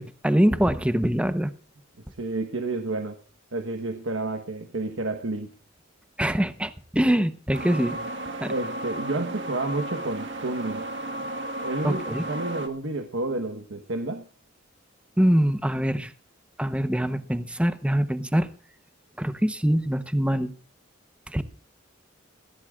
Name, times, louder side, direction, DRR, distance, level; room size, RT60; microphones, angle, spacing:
voice 1, 0.0-1.5 6.2-8.0 8.4-8.5 11.8-12.2 15.2-16.1 16.6-18.5 19.2-20.5 21.3-21.4, equal, 5° right, 0.8 m, -24 dB
voice 2, 2.2-3.2 3.5-5.5 8.5-10.9 11.6-14.3, right 2 dB, 80° right, 1.2 m, -30 dB
sound 1, 7.5-12.7, right 1 dB, 65° right, 1.6 m, -34 dB
22.0 x 16.0 x 2.4 m
head